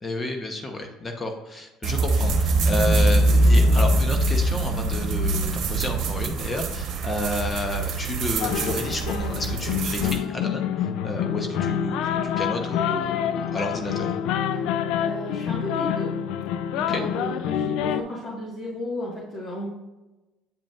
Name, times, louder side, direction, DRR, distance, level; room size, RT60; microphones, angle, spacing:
voice 1, 0.0-14.1 16.7-17.0, left 1 dB, 25° left, 4 dB, 0.8 m, -31 dB
sound 1, 1.8-10.2, right 1 dB, 60° right, 1.0 m, -23 dB
sound 2, 8.4-18.0, left 9 dB, 75° left, 0.3 m, -27 dB
voice 2, 14.5-16.1 16.8-19.7, left 1 dB, 45° left, -4 dB, 1.5 m, -34 dB
8.6 x 5.0 x 2.4 m, 1.1 s
supercardioid pair, 100°, 0 cm